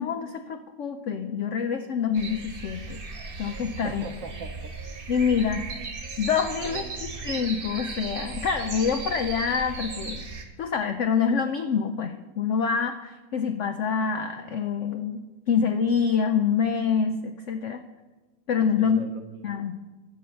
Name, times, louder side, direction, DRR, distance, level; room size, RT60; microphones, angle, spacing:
voice 1, 0.0-3.0 3.4-4.0 5.1-5.7 6.2-10.2 10.6-17.8 18.5-19.0 19.4-19.7, left 6 dB, 80° left, 7 dB, 0.6 m, -26 dB
sound 1, 2.1-10.4, right 3 dB, 35° right, 1.2 m, -36 dB
voice 2, 3.8-4.8 6.6-7.4 18.8-19.6, right 5 dB, 60° right, 7 dB, 0.9 m, -41 dB
11.0 x 5.7 x 7.6 m, 1.2 s
omnidirectional pair, 1.9 m